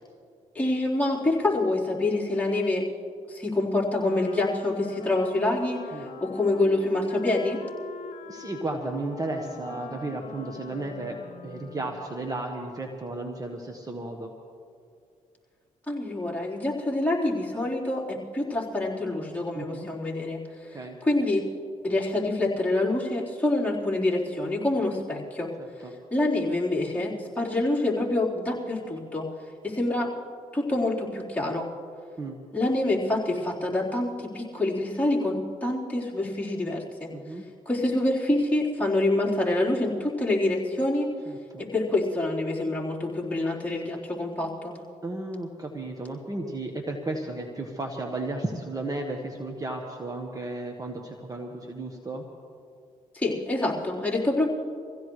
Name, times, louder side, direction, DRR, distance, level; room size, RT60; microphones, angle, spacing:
voice 1, 0.5-2.8 3.3-5.8 6.2-7.6 15.9-20.4 20.7-21.4 21.8-25.5 26.1-29.3 29.6-30.1 30.5-31.7 32.5-37.1 37.7-41.1 41.7-44.8 53.1-54.5, left 2 dB, 10° left, -6 dB, 4.2 m, -26 dB
Wind instrument woodwind instrument, 3.9-12.2, left 7 dB, 65° left, 1.0 m, -44 dB
voice 2, 8.2-11.2 11.4-14.3 19.5-19.9 20.7-21.0 25.6-25.9 32.2-32.4 37.1-37.4 41.3-41.6 45.0-52.2, right 2 dB, 25° right, 2 dB, 1.4 m, -34 dB
24.5 x 16.0 x 3.3 m, 2.3 s
cardioid pair, 70°, 14 cm